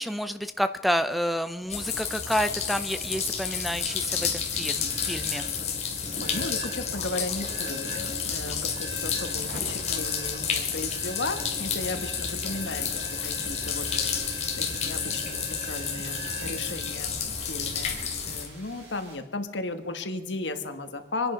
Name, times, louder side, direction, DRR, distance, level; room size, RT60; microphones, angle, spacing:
voice 1, 0.0-5.5, equal, ahead, 11 dB, 0.5 m, -29 dB
sound 1, 1.7-18.5, left 6 dB, 40° left, 2.5 m, -31 dB
sound 2, 2.3-19.1, equal, 65° right, 7.1 m, -43 dB
voice 2, 6.2-18.0 18.3-21.3, left 2 dB, 85° left, 8 dB, 1.5 m, -35 dB
25.5 x 10.0 x 5.6 m, 1.2 s
head